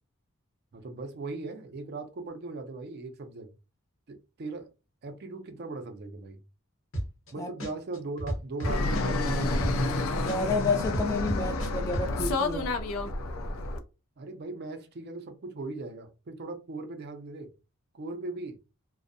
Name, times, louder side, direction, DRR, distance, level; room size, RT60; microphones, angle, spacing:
voice 1, 0.7-3.5 4.1-4.7 5.0-6.4 7.3-9.5 14.2-17.5 17.9-18.6, right 3 dB, 50° right, 0.4 m, -39 dB
sound 1, 6.9-7.3 7.6-10.0 10.3-12.1, equal, 65° left, 0.8 m, -32 dB
Fixed-wing aircraft airplane, 8.6-13.8, left 2 dB, 80° left, 0.4 m, -29 dB
voice 2, 10.1-12.7, left 3 dB, 15° left, 0.3 m, -30 dB
2.5 x 2.1 x 2.5 m
head